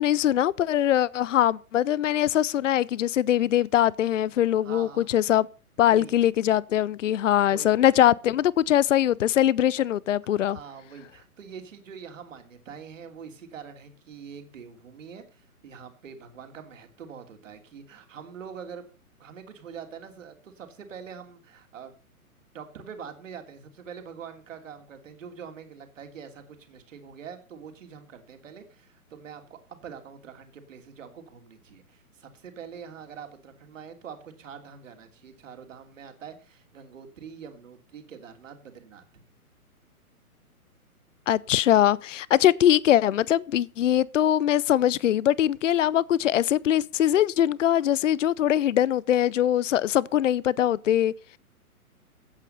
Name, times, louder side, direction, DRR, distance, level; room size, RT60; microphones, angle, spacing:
voice 1, 0.0-5.5 5.8-10.6 41.3-51.1, left 11 dB, 55° left, 0.6 m, -22 dB
voice 2, 4.6-5.3 5.8-6.2 7.5-7.9 10.2-18.9 19.2-21.9 22.5-39.0, right 7 dB, 55° right, 3.1 m, -44 dB
15.0 x 8.5 x 5.5 m
figure-of-eight pair, 125°, 44 cm